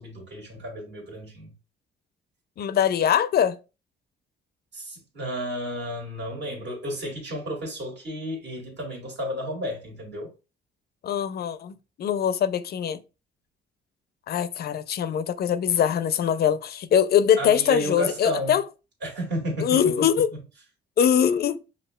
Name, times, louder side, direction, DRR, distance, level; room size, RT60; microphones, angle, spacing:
voice 1, 0.0-1.5 4.7-10.3 17.4-18.5 19.0-19.9, equal, 60° right, 1.9 m, -32 dB
voice 2, 2.6-3.6 11.0-13.0 14.3-18.6 19.6-20.3 21.0-21.6, left 9 dB, 55° left, 0.4 m, -22 dB
5.4 x 2.3 x 2.2 m
cardioid pair, 90°, 20 cm